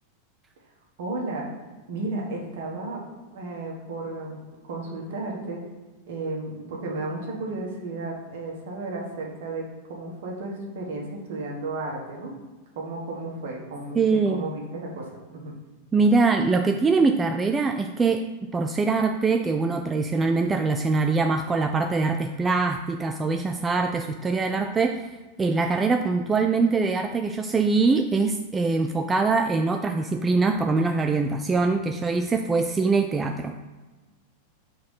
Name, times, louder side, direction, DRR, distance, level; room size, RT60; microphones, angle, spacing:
voice 1, 1.0-1.5 1.9-3.0 3.3-4.4 4.7-5.6 6.1-12.3 12.7-15.5, right 2 dB, 55° right, -1 dB, 1.5 m, -33 dB
voice 2, 14.0-14.4 15.9-25.1 25.4-33.5, right 4 dB, 15° right, 5 dB, 0.3 m, -23 dB
4.8 x 3.9 x 5.5 m, 1.2 s
figure-of-eight pair, 90°, 0 cm